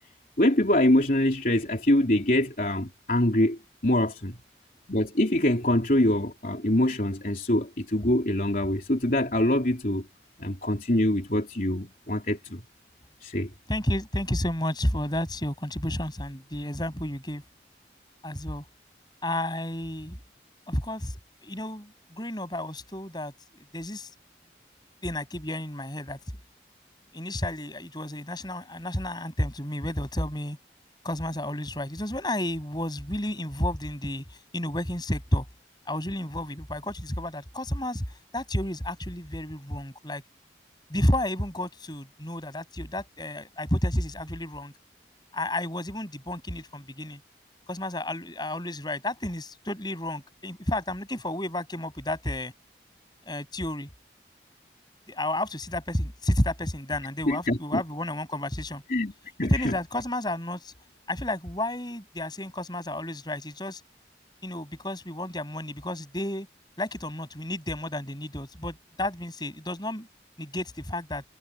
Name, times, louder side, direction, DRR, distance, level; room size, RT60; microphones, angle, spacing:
voice 1, 0.4-4.4 4.9-10.1 10.4-12.6 13.2-13.5 57.3-57.8 58.9-59.1 59.4-59.7, left 1 dB, 50° left, 3.6 m, -24 dB
voice 2, 13.7-17.4 18.2-18.6 19.2-20.2 20.7-24.1 25.0-26.2 27.1-30.6 31.0-35.5 35.9-38.1 38.3-40.2 40.9-44.7 45.3-47.2 47.7-52.5 53.2-53.9 55.1-58.8 59.4-60.7 61.1-63.8 64.4-66.5 66.8-70.1 70.4-71.2, left 1 dB, 25° left, 7.3 m, -31 dB
head